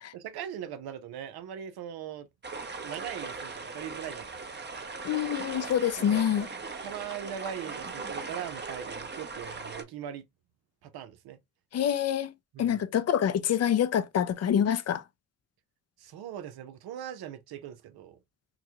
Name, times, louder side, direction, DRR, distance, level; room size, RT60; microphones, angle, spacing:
voice 1, 0.1-2.3 2.8-4.6 6.0-6.5 6.8-10.2 10.8-11.4 12.5-12.8 16.0-18.2, right 9 dB, 75° right, 0.7 m, -40 dB
sound 1, 2.4-9.8, right 4 dB, 30° right, 0.8 m, -39 dB
voice 2, 5.0-6.5 11.7-12.3 12.6-15.0, left 9 dB, 40° left, 0.5 m, -26 dB
3.9 x 2.1 x 2.8 m
supercardioid pair, 45°, 38 cm